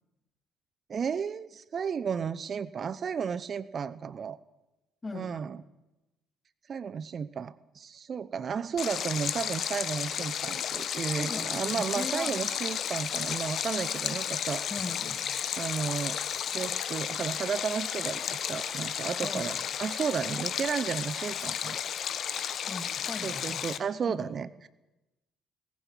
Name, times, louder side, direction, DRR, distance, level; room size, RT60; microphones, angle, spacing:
voice 1, 0.9-4.4 5.1-5.6 6.7-14.6 15.6-16.2 16.5-21.8 23.2-24.7, right 6 dB, 45° right, 16 dB, 0.8 m, -33 dB
voice 2, 5.0-5.5 11.2-12.3 14.7-15.3 19.2-19.7 22.7-23.6 24.1-24.4, left 3 dB, 25° left, 8 dB, 2.6 m, -39 dB
Stream, 8.8-23.8, left 9 dB, 50° left, 1.1 m, -33 dB
20.0 x 15.0 x 9.7 m, 0.99 s
figure-of-eight pair, 50°, 0 cm